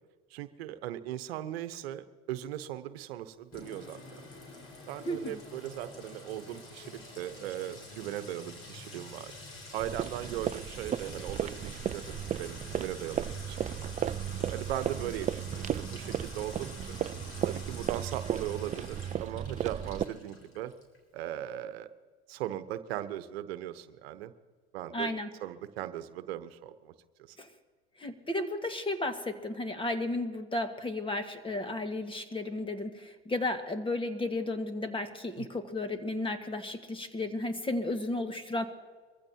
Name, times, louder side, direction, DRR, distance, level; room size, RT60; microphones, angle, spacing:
voice 1, 0.3-4.2 4.9-9.3 9.7-13.9 14.5-17.0 17.4-20.7 21.1-21.9 22.3-24.3 24.7-25.1 25.4-26.9 27.3-27.4 35.4-35.5, right 12 dB, 75° right, 11 dB, 1.0 m, -38 dB
Sink (filling or washing) / Trickle dribble / Fill (with liquid), 3.5-21.0, left 2 dB, 45° left, 4.8 m, -47 dB
voice 2, 5.0-5.4 24.9-25.3 27.4-27.5 28.0-38.6, left 2 dB, 15° left, 8 dB, 1.7 m, -33 dB
sound 1, 9.8-20.1, right 10 dB, 25° right, 0.4 m, -35 dB
23.5 x 15.0 x 2.9 m, 1.5 s
hypercardioid pair, 90°, 31 cm